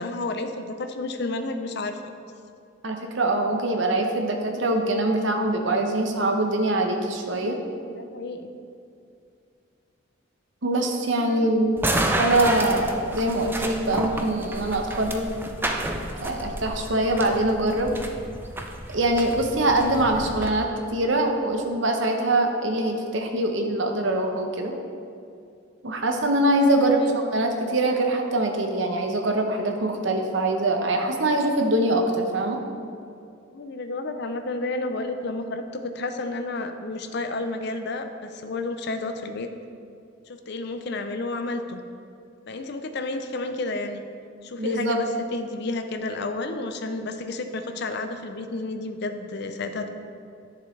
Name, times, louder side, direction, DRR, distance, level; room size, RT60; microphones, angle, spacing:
voice 1, 0.0-2.0 7.9-8.5 11.2-11.5 26.8-27.1 33.5-39.5 40.3-41.8 42.5-44.1 44.4-49.9, left 2 dB, 60° left, 7 dB, 0.6 m, -31 dB
voice 2, 2.8-7.6 10.6-11.8 12.2-15.3 16.2-17.9 18.9-24.7 25.8-32.6 44.6-45.0, right 1 dB, 65° right, 3 dB, 0.9 m, -23 dB
sound 1, 11.8-20.5, right 1 dB, 10° right, 0.5 m, -30 dB
10.5 x 6.8 x 3.2 m, 2.4 s
head